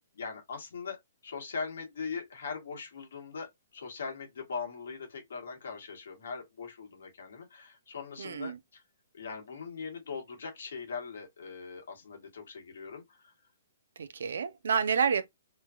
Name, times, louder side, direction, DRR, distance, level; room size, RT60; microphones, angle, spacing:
voice 1, 0.1-8.8 9.1-13.3, left 5 dB, 65° left, 1.3 m, -41 dB
voice 2, 8.2-8.6 14.0-15.3, right 6 dB, 70° right, 0.4 m, -29 dB
3.1 x 2.2 x 2.3 m
hypercardioid pair, 180°, 0 cm